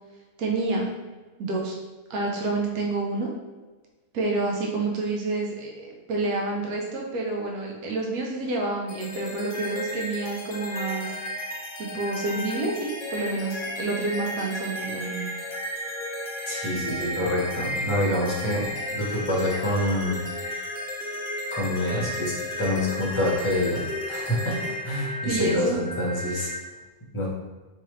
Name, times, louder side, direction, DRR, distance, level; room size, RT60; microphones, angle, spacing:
voice 1, 0.4-0.9 1.4-1.8 2.1-3.3 4.1-11.1 11.8-15.3 25.2-25.8, right 3 dB, 70° right, -1 dB, 1.3 m, -28 dB
sound 1, 8.9-26.5, left 1 dB, 60° left, 0.5 m, -33 dB
voice 2, 16.5-20.2 21.5-26.5 27.1-27.3, left 1 dB, 20° left, -5 dB, 1.0 m, -27 dB
4.6 x 3.4 x 3.2 m, 1.3 s
omnidirectional pair, 1.7 m